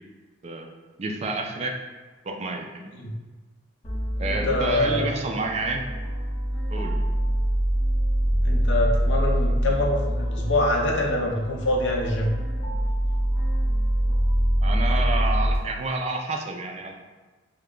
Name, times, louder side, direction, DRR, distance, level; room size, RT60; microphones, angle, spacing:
voice 1, 1.0-1.7 2.2-2.7 4.2-5.8 6.7-6.9 14.6-17.0, right 3 dB, 35° right, 2 dB, 0.3 m, -29 dB
sound 1, 3.8-15.6, equal, 35° left, 0.8 m, -25 dB
voice 2, 4.2-5.1 8.4-12.3, left 1 dB, 80° left, 0 dB, 0.6 m, -25 dB
3.3 x 2.1 x 3.7 m, 1.3 s
head